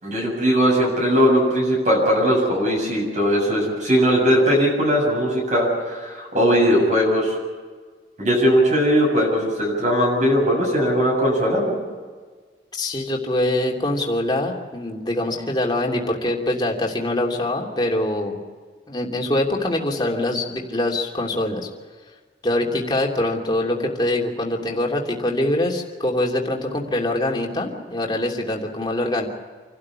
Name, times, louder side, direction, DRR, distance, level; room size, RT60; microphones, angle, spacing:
voice 1, 0.0-7.3 8.2-11.8, equal, 45° right, -2 dB, 7.4 m, -19 dB
voice 2, 12.7-18.4 18.9-21.7 22.4-29.3, left 1 dB, 25° left, 0 dB, 3.0 m, -24 dB
28.0 x 12.5 x 9.8 m, 1.5 s
head